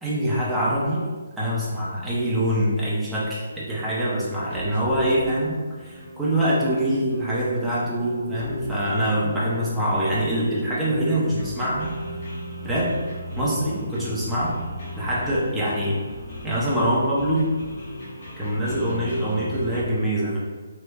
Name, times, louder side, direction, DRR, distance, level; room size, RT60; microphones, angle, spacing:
voice 1, 0.0-11.9 12.6-12.9 13.4-14.5 14.9-16.0 16.4-17.5 18.4-20.4, right 1 dB, 5° right, -8 dB, 0.8 m, -24 dB
sound 1, 4.4-19.8, left 1 dB, 50° left, 1.2 m, -37 dB
3.2 x 3.2 x 2.4 m, 1.3 s
hypercardioid pair, 155°, 0 cm